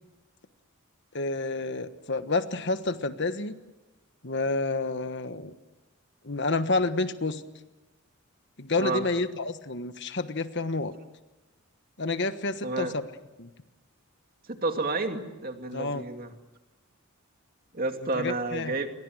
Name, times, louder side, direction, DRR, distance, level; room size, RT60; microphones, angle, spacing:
voice 1, 1.1-3.6 4.2-5.5 6.2-7.4 8.6-10.9 12.0-12.9 13.4-13.5 15.7-16.0 18.1-18.7, left 3 dB, 55° left, 10 dB, 1.3 m, -29 dB
voice 2, 8.8-9.1 12.6-12.9 14.5-16.3 17.7-18.9, right 3 dB, 40° right, 5 dB, 2.5 m, -30 dB
29.5 x 23.0 x 7.9 m, 1.1 s
head